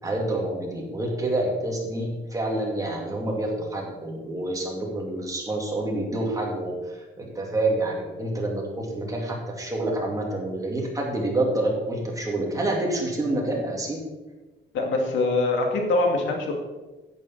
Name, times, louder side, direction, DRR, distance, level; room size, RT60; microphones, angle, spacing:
voice 1, 0.0-14.0, right 1 dB, 20° right, -1 dB, 2.6 m, -28 dB
voice 2, 14.7-16.5, left 2 dB, 85° left, 2 dB, 2.2 m, -23 dB
10.5 x 9.7 x 4.6 m, 1.2 s
cardioid pair, 130°, 19 cm